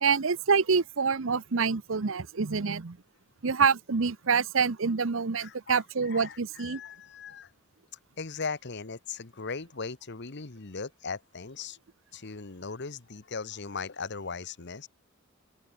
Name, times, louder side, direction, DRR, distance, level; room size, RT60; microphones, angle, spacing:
voice 1, 0.0-3.0 3.4-6.8, right 5 dB, 65° right, 0.8 m, -26 dB
voice 2, 5.4-7.5 8.2-11.8 12.1-14.9, left 4 dB, 55° left, 1.2 m, -38 dB
open air
head